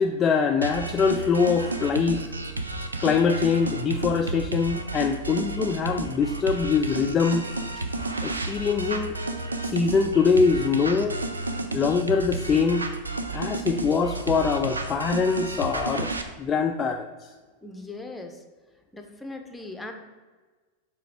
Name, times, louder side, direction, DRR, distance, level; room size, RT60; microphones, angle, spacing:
voice 1, 0.0-2.3 3.0-7.5 8.2-9.2 9.6-11.2 11.7-12.9 13.3-16.1 16.4-17.3, left 5 dB, 25° left, 4 dB, 0.4 m, -23 dB
sound 1, 0.6-16.2, right 2 dB, 80° right, 0.5 m, -31 dB
voice 2, 17.6-18.4 18.9-19.9, left 2 dB, 5° left, 4 dB, 0.8 m, -39 dB
6.9 x 3.5 x 4.8 m, 1.4 s
figure-of-eight pair, 90°, 0 cm